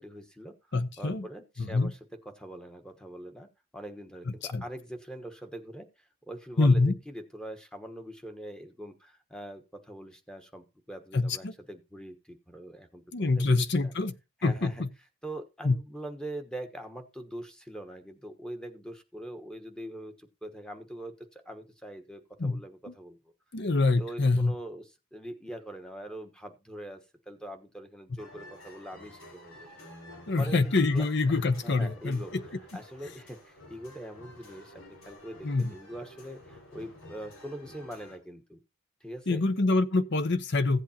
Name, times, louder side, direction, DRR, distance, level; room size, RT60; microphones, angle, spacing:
voice 1, 0.0-0.5 1.0-2.0 2.2-3.5 3.7-13.0 13.4-13.9 14.4-14.7 15.2-23.2 23.9-29.7 30.4-31.0 31.6-32.3 32.7-38.6 39.0-39.4, right 1 dB, 5° left, 1.1 m, -43 dB
voice 2, 0.7-1.3 1.6-1.9 4.3-4.6 6.6-7.0 11.1-11.5 13.1-14.1 14.4-14.9 15.6-15.7 22.4-22.6 22.9-23.0 23.5-24.5 30.3-32.4 35.4-35.7 39.3-40.8, left 3 dB, 55° left, 0.8 m, -25 dB
sound 1, 28.2-38.2, left 1 dB, 90° left, 4.1 m, -51 dB
15.5 x 8.1 x 2.8 m
head